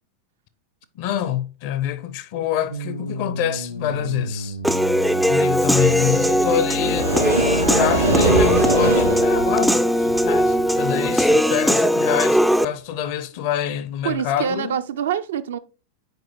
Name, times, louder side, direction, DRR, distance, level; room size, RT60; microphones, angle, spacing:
voice 1, 0.9-4.6 5.2-14.8, left 10 dB, 45° left, 0.7 m, -26 dB
sound 1, 2.7-9.4, right 1 dB, 90° left, 0.8 m, -33 dB
Human voice / Piano, 4.6-12.7, equal, ahead, 0.4 m, -19 dB
sound 2, 6.9-11.3, right 2 dB, 80° right, 2.1 m, -23 dB
voice 2, 14.0-15.6, right 8 dB, 60° right, 0.5 m, -25 dB
7.8 x 4.8 x 2.9 m
figure-of-eight pair, 90°, 0 cm